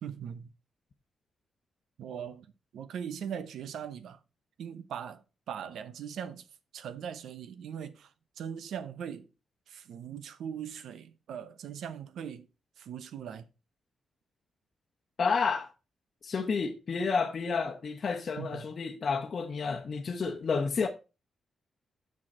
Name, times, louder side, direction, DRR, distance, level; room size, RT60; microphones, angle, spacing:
voice 1, 0.0-0.5 2.0-2.5 2.7-4.2 4.6-5.2 5.5-6.5 6.7-8.1 8.4-9.3 9.7-12.5 12.8-13.4 18.4-18.6, right 8 dB, 85° right, 0.8 m, -40 dB
voice 2, 15.2-15.7 16.2-20.9, left 5 dB, 50° left, 0.9 m, -30 dB
6.6 x 6.3 x 4.3 m
cardioid pair, 105°, 0 cm